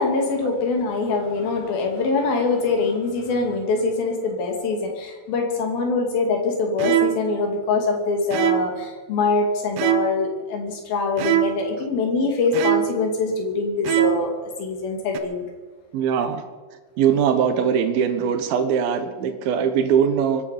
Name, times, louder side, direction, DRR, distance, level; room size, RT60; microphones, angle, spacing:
voice 1, 0.0-15.4, left 4 dB, 60° left, 2 dB, 4.0 m, -24 dB
sound 1, 6.8-7.4 8.3-8.8 9.8-10.3 11.2-11.7 12.5-13.1 13.8-14.4 15.1-15.2, right 13 dB, 85° right, 3.0 m, -22 dB
voice 2, 15.9-16.4 17.0-20.4, right 7 dB, 70° right, 8 dB, 2.8 m, -21 dB
23.5 x 11.5 x 5.2 m, 1.4 s
omnidirectional pair, 4.9 m